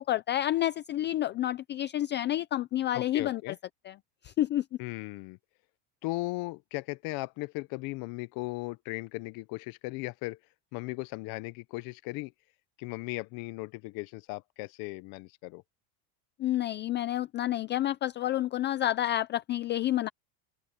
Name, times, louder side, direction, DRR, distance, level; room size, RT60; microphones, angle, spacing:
voice 1, 0.0-3.6 3.8-4.0 4.2-4.6 16.4-20.1, left 13 dB, 30° left, 0.4 m, -29 dB
voice 2, 2.9-3.6 4.8-5.4 6.0-10.4 10.7-12.3 12.8-15.6, left 22 dB, 55° left, 0.7 m, -37 dB
open air
cardioid pair, 155°, 41 cm